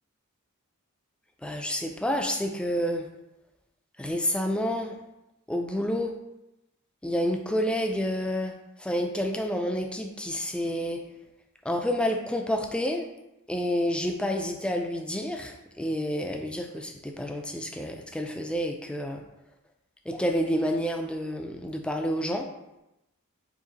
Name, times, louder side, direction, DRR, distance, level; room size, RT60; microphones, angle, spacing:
voice 1, 1.4-3.1 4.0-5.0 5.5-6.1 7.0-11.0 11.6-13.1 13.5-19.2 20.1-22.5, equal, 5° left, 3 dB, 0.3 m, -29 dB
4.8 x 2.6 x 4.0 m, 0.92 s
head